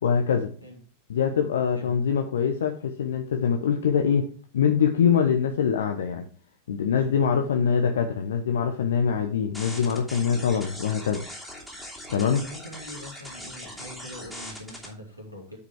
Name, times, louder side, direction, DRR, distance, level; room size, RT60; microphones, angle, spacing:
voice 1, 0.0-0.5 1.1-4.3 4.5-6.3 6.7-11.3 12.1-12.4, left 7 dB, 65° left, 5 dB, 0.9 m, -24 dB
voice 2, 6.9-7.5 12.0-15.6, left 1 dB, 90° left, -2 dB, 3.1 m, -43 dB
sound 1, 9.5-14.9, equal, ahead, 3.0 m, -40 dB
9.6 x 5.1 x 4.6 m, 0.42 s
figure-of-eight pair, 90°, 0 cm